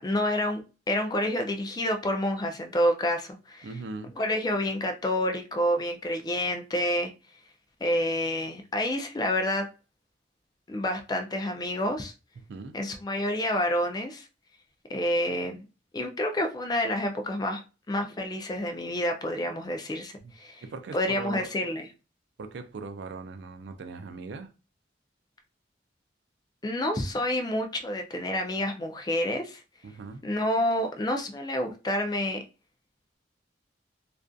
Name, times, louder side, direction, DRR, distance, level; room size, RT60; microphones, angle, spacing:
voice 1, 0.0-3.7 4.2-7.1 7.8-9.7 10.7-12.1 12.7-14.3 14.9-15.7 15.9-17.6 17.9-20.6 20.9-21.9 26.6-29.6 30.2-32.4, left 1 dB, 20° left, 0.3 m, -28 dB
voice 2, 3.6-4.2 12.5-12.8 20.2-20.3 20.6-21.5 22.4-24.5 29.8-30.2, right 4 dB, 70° right, 0.4 m, -39 dB
2.5 x 2.4 x 2.3 m
head